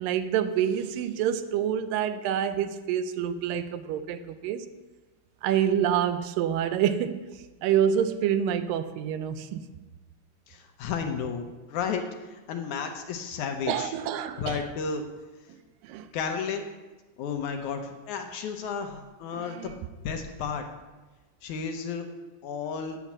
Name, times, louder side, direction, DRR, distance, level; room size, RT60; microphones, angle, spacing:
voice 1, 0.0-4.7 5.4-7.3 7.6-9.6 13.7-14.6 15.5-15.6 15.8-16.1 19.3-19.8, right 9 dB, 85° right, 2.4 m, -27 dB
voice 2, 10.5-13.9 14.4-15.0 16.1-16.7 17.2-19.8 20.0-20.7 21.4-22.1 22.4-23.0, left 6 dB, 70° left, 2.1 m, -32 dB
9.3 x 8.6 x 7.2 m
omnidirectional pair, 3.9 m